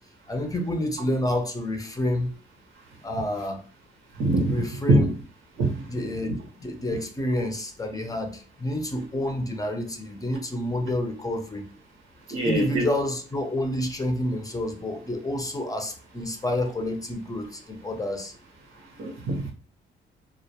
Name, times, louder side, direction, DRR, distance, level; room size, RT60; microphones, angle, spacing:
voice 1, 0.3-2.4 3.0-3.6 4.5-5.1 5.9-11.6 12.4-18.3, left 1 dB, 20° left, 4 dB, 0.5 m, -29 dB
voice 2, 4.2-4.5 4.9-5.1 5.6-5.7 12.3-12.8 19.0-19.5, right 2 dB, 85° right, 1 dB, 0.8 m, -23 dB
2.1 x 2.1 x 2.7 m, 0.39 s
cardioid pair, 90°, 20 cm